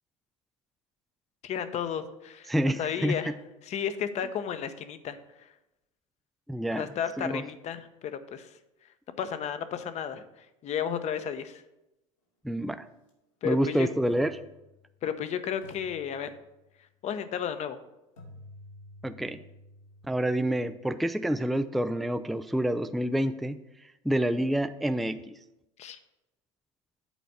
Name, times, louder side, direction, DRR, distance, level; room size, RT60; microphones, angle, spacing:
voice 1, 1.4-2.5 2.8-3.3 3.6-5.5 6.7-8.5 9.2-11.6 13.4-13.9 15.0-16.4 17.0-17.8 25.8-26.0, left 8 dB, 40° left, 11 dB, 0.8 m, -33 dB
voice 2, 2.5-3.3 6.5-6.9 7.2-7.4 12.4-12.8 13.4-14.3 19.0-19.4 20.0-25.4, right 1 dB, ahead, 10 dB, 0.3 m, -28 dB
sound 1, 13.0-13.1 14.1-15.2 15.6-16.9 18.2-22.1, left 1 dB, 80° left, 2.6 m, -53 dB
8.2 x 4.3 x 6.4 m, 0.94 s
hypercardioid pair, 85°, 17 cm